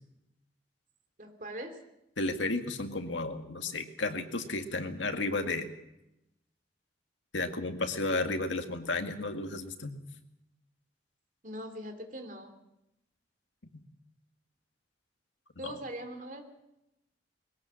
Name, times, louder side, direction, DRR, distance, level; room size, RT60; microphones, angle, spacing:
voice 1, 1.2-1.8 11.4-12.5 15.6-16.4, right 1 dB, 45° right, 6 dB, 2.9 m, -41 dB
voice 2, 2.2-5.7 7.3-9.9 13.7-13.8 15.6-15.8, left 2 dB, 85° left, 6 dB, 2.0 m, -33 dB
21.5 x 18.0 x 7.6 m, 0.88 s
head